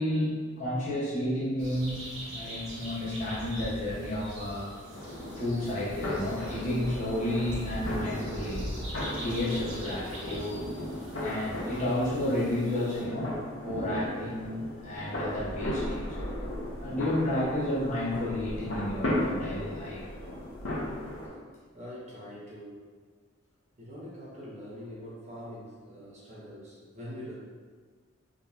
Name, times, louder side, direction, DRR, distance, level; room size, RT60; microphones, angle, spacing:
voice 1, 0.0-4.7 5.3-10.6 11.2-13.3 13.6-16.1 16.8-20.0, left 1 dB, 35° left, -8 dB, 0.8 m, -31 dB
sound 1, 1.6-13.0, equal, 75° right, 1.4 m, -41 dB
sound 2, 4.9-21.3, left 1 dB, 80° left, 0.9 m, -36 dB
voice 2, 21.7-22.8 23.8-27.3, equal, 35° right, -8 dB, 1.0 m, -44 dB
3.6 x 2.9 x 2.5 m, 1.5 s
head